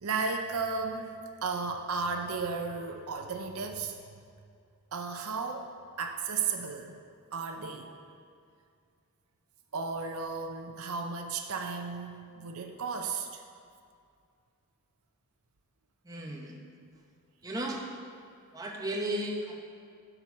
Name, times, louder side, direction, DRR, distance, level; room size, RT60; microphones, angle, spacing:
voice 1, 0.0-1.1 1.4-4.0 4.9-5.7 6.0-7.0 7.3-7.9 9.7-13.4, right 4 dB, 70° right, 5 dB, 0.6 m, -34 dB
voice 2, 16.0-16.6 17.4-17.8 18.5-19.6, right 1 dB, 15° right, -1 dB, 1.0 m, -34 dB
12.0 x 4.5 x 5.8 m, 2.3 s
head